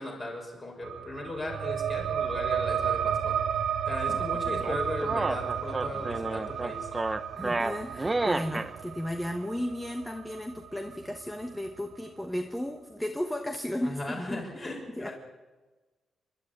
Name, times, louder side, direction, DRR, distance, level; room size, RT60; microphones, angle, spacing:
voice 1, 0.0-3.3 3.8-6.9 13.8-15.1, left 2 dB, 25° left, 0 dB, 6.2 m, -37 dB
sound 1, 0.8-12.0, right 8 dB, 80° right, 1.3 m, -33 dB
sound 2, 4.6-8.7, right 2 dB, 15° right, 0.8 m, -30 dB
voice 2, 7.4-15.1, left 1 dB, 5° left, 6 dB, 1.1 m, -35 dB
29.5 x 12.0 x 10.0 m, 1.2 s
wide cardioid pair, 170°, 0 cm